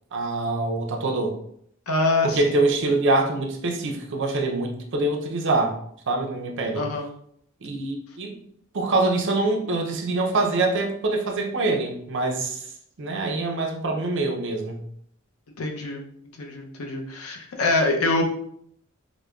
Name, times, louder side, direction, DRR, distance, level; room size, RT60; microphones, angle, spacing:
voice 1, 0.1-1.3 2.2-5.7 6.1-6.9 7.6-8.4 8.7-12.6 13.0-14.8, right 2 dB, 60° right, 2 dB, 0.5 m, -24 dB
voice 2, 1.9-2.6 6.7-7.1 15.6-16.0 16.4-18.2, left 2 dB, 85° left, 2 dB, 0.6 m, -24 dB
4.8 x 2.1 x 2.3 m, 0.67 s
head